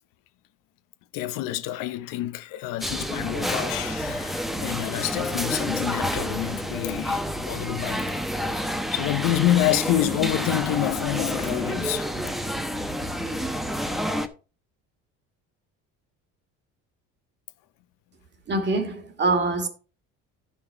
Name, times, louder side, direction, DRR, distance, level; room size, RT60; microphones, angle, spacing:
voice 1, 1.1-8.1 8.5-12.3, left 14 dB, 85° left, 0.9 m, -27 dB
sound 1, 2.8-14.3, equal, ahead, 0.8 m, -29 dB
voice 2, 18.5-19.7, right 3 dB, 35° right, 1.8 m, -24 dB
11.0 x 5.8 x 4.5 m
cardioid pair, 145°, 32 cm